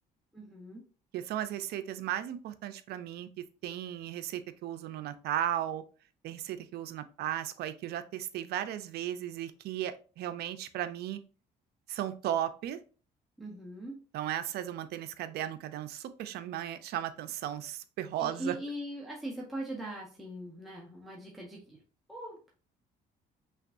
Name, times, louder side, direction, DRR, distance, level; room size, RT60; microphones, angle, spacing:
voice 1, 0.3-0.8 13.4-14.0 18.2-21.8 22.1-22.5, right 1 dB, ahead, -3 dB, 1.1 m, -41 dB
voice 2, 1.1-5.8 6.2-11.2 11.9-12.8 14.1-18.6, right 11 dB, 70° right, 11 dB, 0.6 m, -36 dB
5.7 x 3.0 x 2.6 m, 0.37 s
cardioid pair, 110°, 17 cm